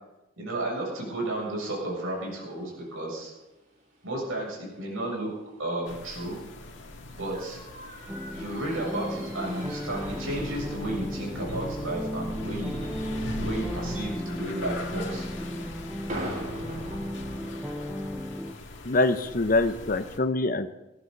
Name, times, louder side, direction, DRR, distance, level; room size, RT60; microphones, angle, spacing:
voice 1, 0.4-3.3 4.0-5.3 5.6-6.4 7.1-7.6 8.3-12.9 13.4-15.7, right 1 dB, 90° right, -2 dB, 7.4 m, -33 dB
sound 1, 1.1-18.2, right 1 dB, 40° right, 4.9 m, -46 dB
sound 2, 5.9-20.2, left 1 dB, 65° left, 2.0 m, -40 dB
sound 3, 8.1-18.5, equal, ahead, 0.5 m, -35 dB
voice 2, 18.8-20.7, left 2 dB, 45° left, 10 dB, 0.8 m, -24 dB
19.0 x 14.0 x 4.1 m, 1.0 s
head